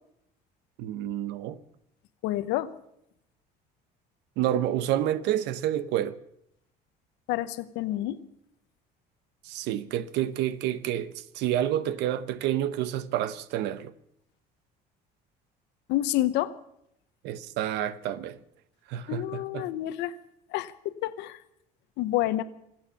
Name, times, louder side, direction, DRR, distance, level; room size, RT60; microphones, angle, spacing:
voice 1, 0.8-1.6 4.4-6.2 9.4-13.9 17.2-18.4 18.9-19.7, right 11 dB, 80° right, 0.9 m, -29 dB
voice 2, 2.2-2.7 7.3-8.2 15.9-16.5 19.1-20.1 20.5-21.4 22.0-22.4, left 15 dB, 85° left, 1.0 m, -28 dB
26.0 x 8.9 x 5.7 m
cardioid pair, 110°, 18 cm